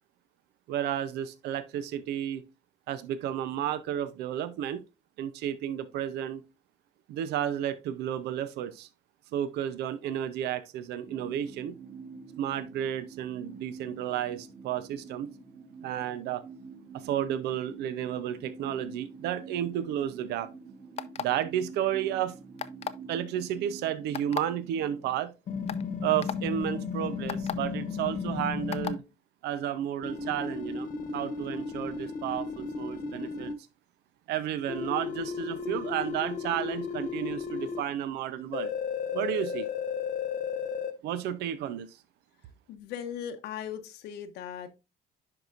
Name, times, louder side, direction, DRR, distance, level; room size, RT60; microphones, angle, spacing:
voice 1, 0.7-2.4 2.9-4.8 5.2-6.4 7.1-8.9 9.3-11.8 12.4-15.3 15.8-16.4 16.9-20.5 21.2-22.4 23.1-25.3 26.0-29.0 29.4-33.5 34.3-38.7 39.1-39.7 41.0-42.0, right 10 dB, 80° right, 0.7 m, -32 dB
sound 1, 11.0-25.2, right 5 dB, 30° right, 2.0 m, -46 dB
sound 2, 21.0-21.4 22.6-23.0 24.1-24.4 25.2-25.3 25.7-25.8 26.2-26.4 27.3-27.5 28.7-29.0, left 8 dB, 35° left, 0.5 m, -34 dB
sound 3, 25.5-28.9 30.0-33.5 34.7-37.8 38.5-40.9, left 5 dB, 55° left, 1.1 m, -34 dB
voice 2, 42.7-44.7, left 9 dB, 80° left, 0.9 m, -38 dB
10.5 x 4.7 x 2.5 m
cardioid pair, 110°, 17 cm